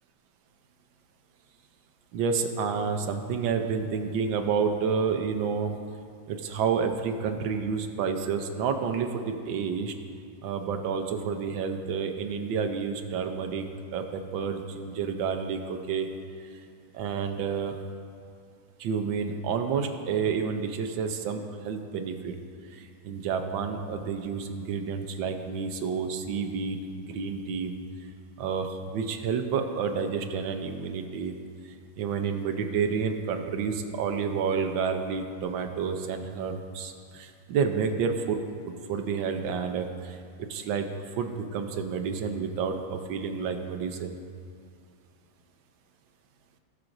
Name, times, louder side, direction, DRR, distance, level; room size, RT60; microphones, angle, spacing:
voice 1, 2.1-5.7 6.3-9.9 10.4-13.7 13.9-16.1 16.9-17.8 18.8-22.3 22.7-27.7 28.4-31.3 31.6-38.4 38.9-40.9 41.1-44.1, right 6 dB, 80° right, 6 dB, 1.4 m, -30 dB
17.5 x 6.0 x 2.6 m, 2.4 s
omnidirectional pair, 2.1 m